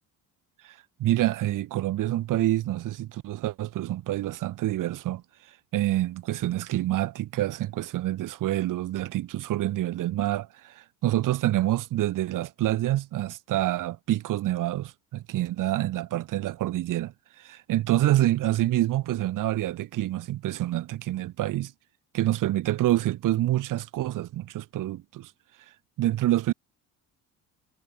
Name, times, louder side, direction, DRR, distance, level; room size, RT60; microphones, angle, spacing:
voice 1, 0.6-5.2 5.7-21.7 22.1-25.3 26.0-26.5, right 14 dB, 60° right, 1.5 m, -27 dB
supercardioid pair, 85°, 35 cm